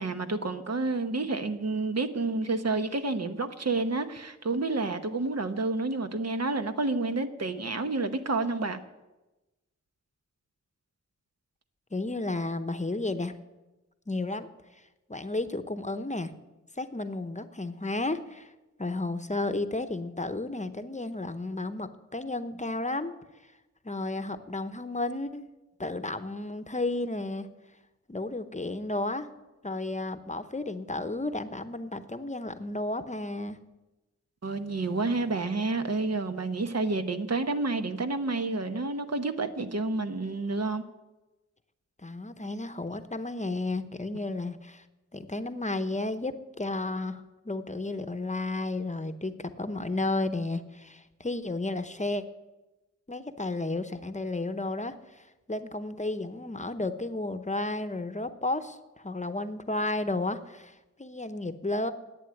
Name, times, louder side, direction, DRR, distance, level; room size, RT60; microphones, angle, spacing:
voice 1, 0.0-8.8 34.4-40.8, right 3 dB, 60° right, 1.0 m, -29 dB
voice 2, 11.9-13.3 14.1-14.5 15.1-16.3 16.8-18.5 18.8-23.1 23.8-25.4 25.8-27.5 28.1-29.3 29.6-33.6 42.0-44.8 45.1-52.2 53.1-61.9, left 2 dB, 25° left, 0.8 m, -32 dB
11.0 x 8.5 x 9.7 m
wide cardioid pair, 65°, 29 cm